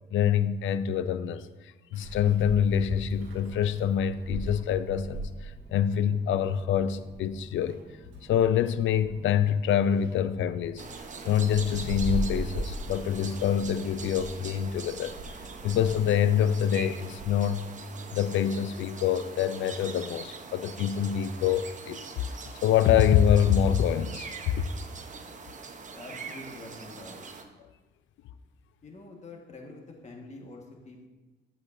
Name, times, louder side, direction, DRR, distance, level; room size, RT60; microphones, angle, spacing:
voice 1, 0.1-1.5 1.9-7.8 8.2-10.8 11.2-15.1 15.6-17.6 18.1-22.0 22.6-24.3 24.6-24.7, left 9 dB, 75° left, 0.5 m, -25 dB
Meow, 1.9-15.9, right 1 dB, 75° right, 1.8 m, -40 dB
sound 1, 10.8-27.4, right 4 dB, 40° right, 0.9 m, -42 dB
voice 2, 25.9-27.2 28.8-31.1, left 2 dB, 35° left, 1.5 m, -46 dB
11.0 x 8.0 x 2.6 m
cardioid pair, 90°, 20 cm